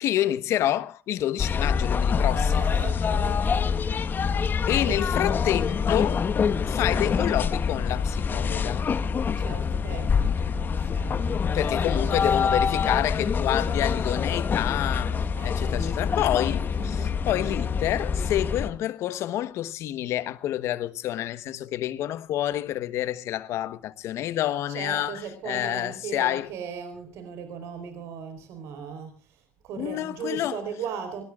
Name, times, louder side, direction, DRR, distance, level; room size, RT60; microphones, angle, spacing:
voice 1, 0.0-2.7 4.7-6.3 6.7-8.9 11.5-25.2 25.4-26.5 29.8-30.6, left 13 dB, 75° left, 1.2 m, -28 dB
sound 1, 1.4-18.7, left 6 dB, 45° left, 1.4 m, -25 dB
voice 2, 2.3-3.8 4.9-5.0 9.4-12.8 13.7-14.2 15.4-16.0 16.8-17.2 24.7-31.2, right 7 dB, 80° right, 4.3 m, -38 dB
24.5 x 19.0 x 2.5 m
cardioid pair, 80°, 5 cm